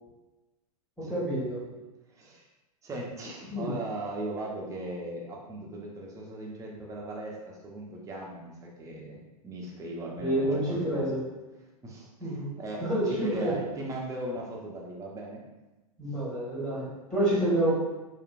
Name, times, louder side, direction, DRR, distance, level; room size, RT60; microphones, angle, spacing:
voice 1, 1.0-1.6 3.5-3.7 10.2-11.2 12.2-12.5 12.8-13.5 16.0-17.7, right 1 dB, 5° left, -9 dB, 1.2 m, -28 dB
voice 2, 2.1-2.5 2.8-11.0 11.8-15.4, right 1 dB, 15° right, -2 dB, 0.6 m, -38 dB
2.9 x 2.4 x 2.4 m, 1.1 s
figure-of-eight pair, 105°, 19 cm